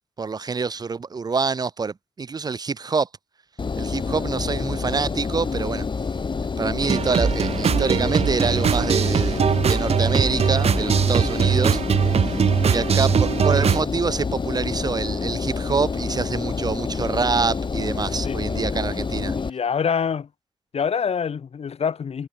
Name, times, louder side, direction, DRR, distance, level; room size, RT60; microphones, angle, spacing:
voice 1, 0.2-3.1 3.8-5.9 6.6-11.8 12.2-12.4 12.7-19.3, right 4 dB, 40° right, 0.4 m, -26 dB
Engine, 3.6-19.5, left 4 dB, 50° left, 2.3 m, -27 dB
sound 1, 6.8-13.8, right 7 dB, 80° right, 0.9 m, -21 dB
voice 2, 19.4-20.3 20.7-22.3, left 6 dB, 75° left, 1.7 m, -25 dB
wide cardioid pair, 105°, 10 cm